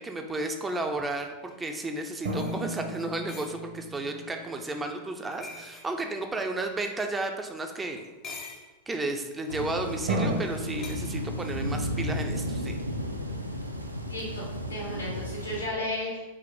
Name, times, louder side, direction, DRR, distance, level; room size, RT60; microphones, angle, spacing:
voice 1, 0.0-8.1 8.9-12.8, right 2 dB, 15° right, 4 dB, 0.3 m, -33 dB
sound 1, 1.5-1.6 2.2-3.6 5.3-5.9 8.0-8.7 9.4-9.7 10.8-11.0, left 4 dB, 30° left, 0.6 m, -44 dB
sound 2, 2.2-5.2 10.1-10.4, right 1 dB, 55° right, 0.7 m, -33 dB
sound 3, 9.5-15.7, equal, 85° right, 0.3 m, -33 dB
voice 2, 14.1-16.2, left 1 dB, 85° left, -5 dB, 1.4 m, -34 dB
3.3 x 2.6 x 3.8 m, 1.1 s
figure-of-eight pair, 90°, 0 cm